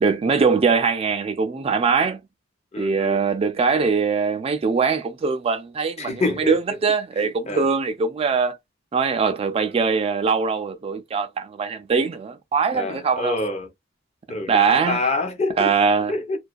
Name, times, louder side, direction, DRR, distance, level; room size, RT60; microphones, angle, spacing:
voice 1, 0.0-2.2 2.8-8.6 8.9-13.4 14.5-15.0 15.6-16.1, right 5 dB, 30° right, 0.3 m, -22 dB
voice 2, 2.7-3.3 6.0-6.6 7.2-7.7 12.7-13.7 14.3-15.7 16.1-16.4, left 2 dB, 35° left, 0.6 m, -27 dB
2.3 x 2.2 x 2.4 m
head